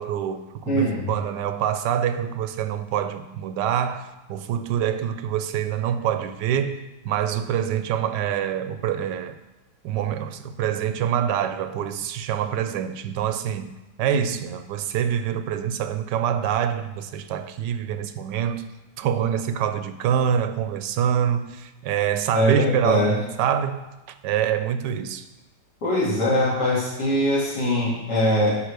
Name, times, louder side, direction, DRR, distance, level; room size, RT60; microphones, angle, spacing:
voice 1, 0.0-9.4 9.8-13.7 14.0-18.6 19.0-23.9 24.2-25.3, right 9 dB, 85° right, 1.3 m, -25 dB
voice 2, 0.7-1.1 22.3-23.1 25.8-28.6, left 1 dB, 75° left, 2.9 m, -22 dB
13.0 x 5.2 x 3.4 m
omnidirectional pair, 1.8 m